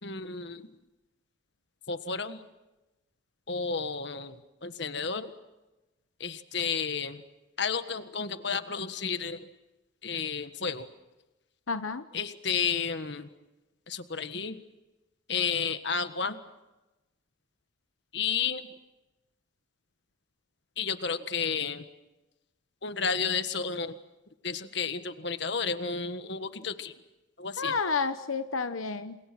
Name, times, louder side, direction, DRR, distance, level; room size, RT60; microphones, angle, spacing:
voice 1, 0.0-0.7 1.9-2.4 3.5-5.3 6.2-7.2 7.6-9.5 10.0-10.9 12.1-13.3 13.9-14.6 15.3-16.4 18.1-18.7 20.8-21.8 22.8-23.9 24.4-26.9 27.4-27.8, left 6 dB, 55° left, 10 dB, 1.6 m, -32 dB
voice 2, 11.7-12.0 27.6-29.2, left 4 dB, 85° left, 10 dB, 1.0 m, -30 dB
28.5 x 27.5 x 6.2 m, 1.0 s
head